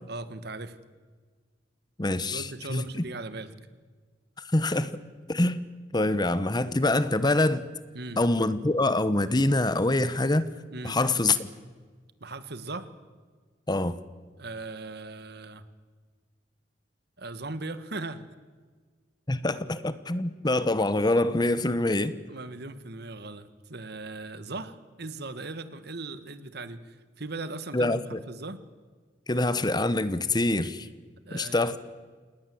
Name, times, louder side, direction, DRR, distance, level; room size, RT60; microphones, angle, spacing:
voice 1, 0.1-0.8 2.3-3.5 7.9-8.2 10.7-11.0 12.2-12.9 14.4-15.6 17.2-18.2 22.3-28.6 31.3-31.8, right 2 dB, 65° right, 1.7 m, -38 dB
voice 2, 2.0-3.0 4.4-4.9 5.3-5.6 5.9-7.7 8.2-10.5 10.8-11.5 13.7-14.0 19.3-22.1 27.7-28.2 29.3-30.9 31.3-31.8, left 2 dB, 25° left, 1.0 m, -25 dB
28.0 x 19.5 x 7.9 m
head